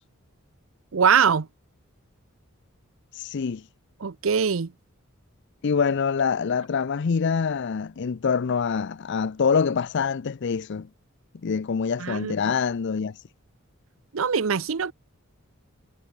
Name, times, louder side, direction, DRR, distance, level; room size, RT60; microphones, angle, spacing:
voice 1, 0.9-1.5 4.0-4.7 12.0-12.5 14.1-14.9, right 6 dB, 65° right, 0.6 m, -22 dB
voice 2, 3.2-3.6 5.6-10.9 11.4-13.2, left 6 dB, 55° left, 0.5 m, -25 dB
head